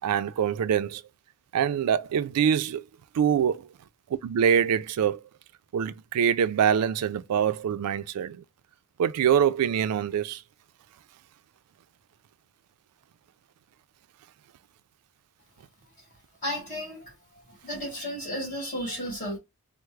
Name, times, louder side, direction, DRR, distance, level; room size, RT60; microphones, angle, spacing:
voice 1, 0.0-1.0 1.5-2.9 3.1-3.7 4.2-5.2 5.7-8.4 9.0-10.4, right 8 dB, 90° right, 0.3 m, -24 dB
voice 2, 16.4-19.4, equal, 35° left, 1.7 m, -34 dB
3.4 x 2.0 x 3.1 m
head